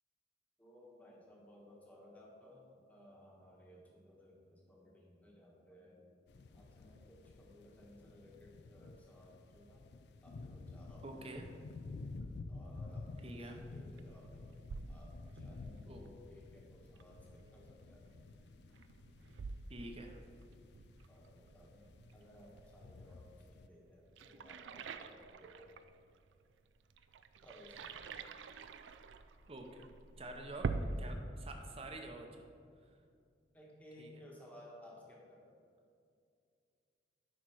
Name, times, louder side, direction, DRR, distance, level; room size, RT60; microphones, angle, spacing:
voice 1, 0.6-6.1 6.5-9.8 10.2-11.5 12.5-14.6 14.9-18.1 21.1-25.8 27.4-28.1 33.5-35.4, left 1 dB, 10° left, -3 dB, 1.3 m, -59 dB
sound 1, 6.3-23.7, left 3 dB, 60° left, 0.4 m, -52 dB
voice 2, 11.0-11.5 13.2-13.6 15.9-16.0 19.7-20.2 29.5-29.9 30.2-30.7 31.0-32.5 34.0-34.2, right 2 dB, 35° right, 3 dB, 0.8 m, -48 dB
sound 2, 13.2-31.0, right 4 dB, 90° right, 0.4 m, -47 dB
10.0 x 4.4 x 4.8 m, 2.3 s
head